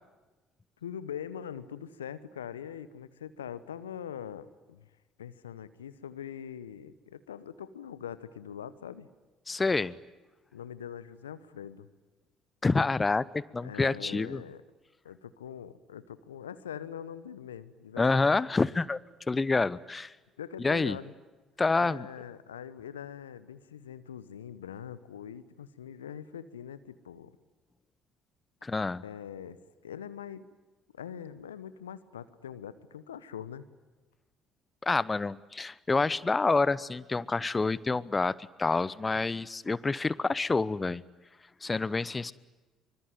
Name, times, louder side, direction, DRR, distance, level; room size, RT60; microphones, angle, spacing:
voice 1, 0.8-4.9 5.2-9.1 10.5-11.9 13.6-14.6 15.0-18.3 20.4-21.1 21.8-27.3 29.0-29.6 29.8-30.4 30.9-33.6, left 9 dB, 85° left, 15 dB, 1.1 m, -42 dB
voice 2, 9.5-10.0 12.6-14.4 18.0-19.0 19.3-20.1 20.6-21.0 21.6-22.1 28.6-29.0 34.8-41.0 41.6-42.3, left 3 dB, 25° left, 20 dB, 0.9 m, -28 dB
25.0 x 25.0 x 9.3 m, 1.2 s
figure-of-eight pair, 50°, 0 cm